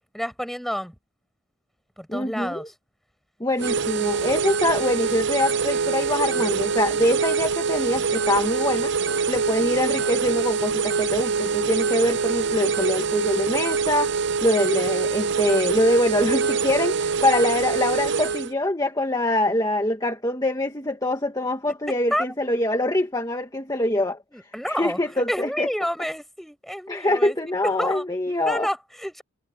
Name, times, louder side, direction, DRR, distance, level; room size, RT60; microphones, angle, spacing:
voice 1, 0.1-0.9 2.0-2.6 3.6-3.7 22.1-22.2 24.3-29.2, equal, ahead, 6.8 m, -29 dB
voice 2, 2.1-2.7 3.4-8.9 9.3-14.1 14.4-24.2 24.7-25.7 26.9-28.7, left 1 dB, 20° left, 1.8 m, -24 dB
sound 1, 3.6-18.5, right 5 dB, 55° right, 0.7 m, -24 dB
head